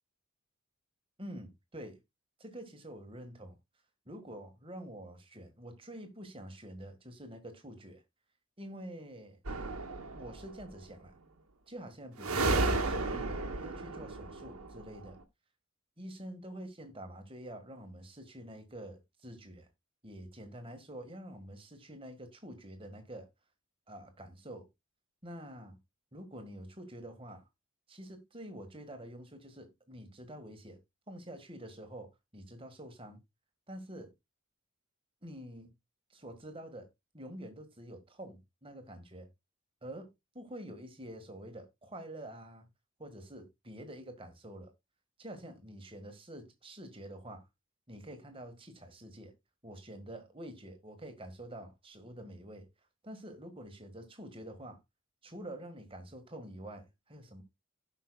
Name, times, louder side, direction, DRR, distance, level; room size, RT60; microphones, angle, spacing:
voice 1, 1.2-2.0 2.4-3.6 4.0-8.0 8.6-9.4 10.1-11.1 11.7-15.2 16.0-19.7 20.0-23.3 23.9-24.7 25.2-25.8 26.1-27.5 27.9-30.8 31.1-33.2 33.7-34.1 35.2-35.7 36.1-36.9 37.1-39.3 39.8-42.7 43.0-44.7 45.2-47.5 47.9-49.3 49.6-52.7 53.0-54.8 55.2-57.4, right 1 dB, 25° right, 1.7 m, -47 dB
sound 1, 9.4-10.6 12.2-15.1, right 2 dB, 85° right, 1.6 m, -33 dB
16.5 x 5.7 x 2.3 m
head